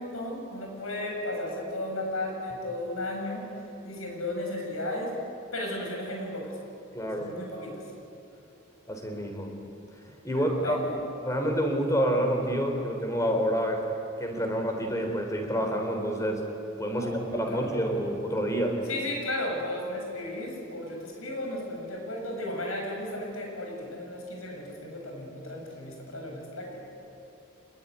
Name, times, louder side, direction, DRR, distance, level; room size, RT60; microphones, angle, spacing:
voice 1, 0.0-3.4 3.8-5.1 5.5-6.5 7.2-7.7 10.3-11.0 16.9-18.0 18.9-26.9, left 1 dB, 80° left, 1 dB, 7.7 m, -35 dB
voice 2, 6.9-7.3 8.9-9.6 10.2-10.8 11.2-13.8 14.2-16.5 16.8-18.8, equal, 15° left, 3 dB, 3.8 m, -28 dB
26.0 x 21.0 x 10.0 m, 2.8 s
head